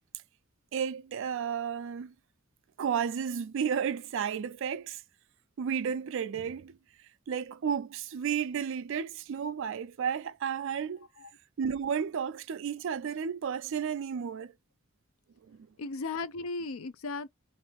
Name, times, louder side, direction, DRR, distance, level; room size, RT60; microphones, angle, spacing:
voice 1, 0.7-2.1 2.8-5.0 5.6-6.8 7.3-11.1 11.6-14.5 15.4-15.7, right 7 dB, 65° right, 0.4 m, -32 dB
voice 2, 15.8-17.3, left 3 dB, 80° left, 0.5 m, -36 dB
3.1 x 2.5 x 3.4 m
head